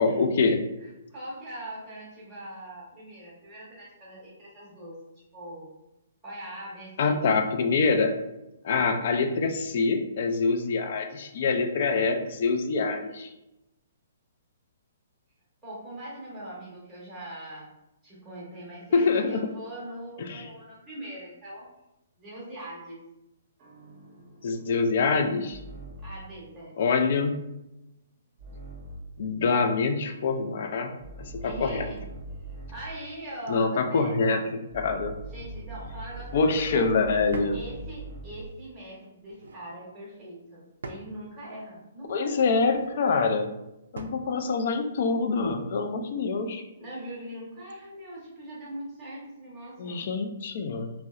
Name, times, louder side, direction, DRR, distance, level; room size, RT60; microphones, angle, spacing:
voice 1, 0.0-0.7 7.0-8.1 8.6-13.3 18.9-19.4 20.2-20.5 24.4-25.6 26.8-27.3 29.2-30.9 31.2-31.8 33.5-35.1 36.3-37.6 42.1-43.5 43.9-46.6 49.8-50.9, left 4 dB, 60° left, 6 dB, 0.3 m, -25 dB
voice 2, 0.8-5.7 6.2-7.5 15.6-17.7 18.0-21.7 22.2-23.0 26.0-26.8 31.4-32.0 32.6-34.4 35.3-36.7 37.5-42.5 46.8-50.1, right 1 dB, 10° right, -7 dB, 0.8 m, -41 dB
sound 1, 23.6-26.3 28.4-29.2 30.1-33.0 34.7-38.6, right 2 dB, 40° right, 0.6 m, -42 dB
sound 2, 36.0-36.4 37.3-37.7 39.2-39.6 40.8-41.2 42.6-43.0 43.9-44.3, right 2 dB, 80° right, 0.3 m, -42 dB
2.6 x 2.0 x 2.3 m, 0.90 s
hypercardioid pair, 140°, 0 cm